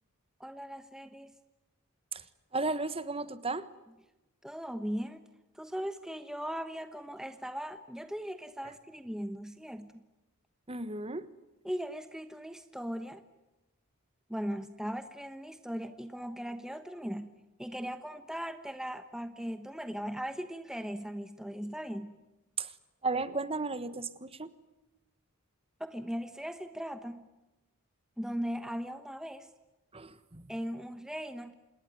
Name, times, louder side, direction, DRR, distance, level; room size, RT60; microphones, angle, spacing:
voice 1, 0.4-1.3 4.4-5.2 5.5-10.0 11.6-13.2 14.3-22.2 25.8-27.2 28.2-29.5 30.5-31.6, equal, ahead, 10 dB, 1.0 m, -38 dB
voice 2, 2.5-3.7 10.7-11.2 22.6-22.7 23.0-24.5 29.9-30.4, right 3 dB, 25° right, 14 dB, 1.3 m, -34 dB
27.5 x 20.5 x 9.4 m, 1.0 s
head